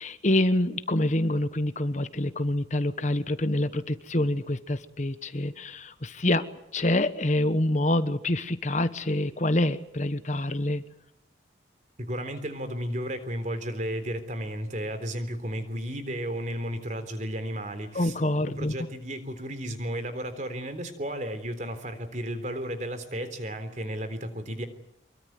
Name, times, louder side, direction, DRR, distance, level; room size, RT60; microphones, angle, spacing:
voice 1, 0.0-6.4 6.7-10.8 17.9-18.7, left 1 dB, 40° left, 12 dB, 1.2 m, -26 dB
voice 2, 12.0-24.7, equal, 40° right, 10 dB, 3.6 m, -33 dB
25.5 x 23.0 x 9.5 m, 0.75 s
head